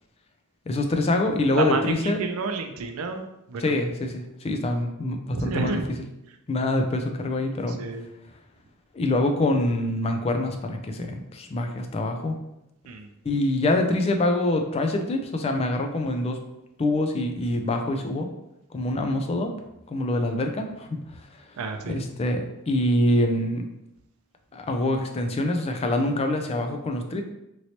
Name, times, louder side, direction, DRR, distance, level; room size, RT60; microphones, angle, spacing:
voice 1, 0.7-2.2 3.6-6.0 6.5-7.8 8.9-12.4 13.2-16.4 16.8-18.3 18.7-19.5 19.9-21.1 21.9-23.6 24.5-27.2, left 1 dB, 25° left, 4 dB, 0.3 m, -25 dB
voice 2, 1.6-3.8 5.3-5.9 7.7-8.1 12.9-13.1 21.6-22.0, right 3 dB, 70° right, 6 dB, 0.4 m, -30 dB
3.0 x 2.9 x 2.8 m, 0.87 s
head